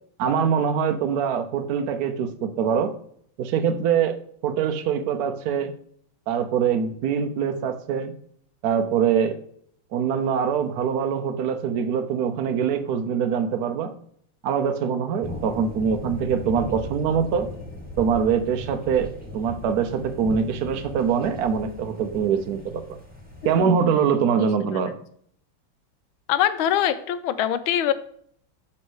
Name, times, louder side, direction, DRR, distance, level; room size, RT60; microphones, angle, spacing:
voice 1, 0.2-2.9 3.4-5.7 6.3-8.1 8.6-9.4 9.9-13.9 14.4-17.5 18.0-23.0 23.4-25.0, right 7 dB, 80° right, 7 dB, 0.8 m, -24 dB
sound 1, 15.2-23.6, left 1 dB, 5° right, 1.1 m, -37 dB
voice 2, 23.6-23.9 26.3-27.9, left 10 dB, 75° left, 12 dB, 1.4 m, -23 dB
7.2 x 3.3 x 6.2 m, 0.63 s
omnidirectional pair, 2.4 m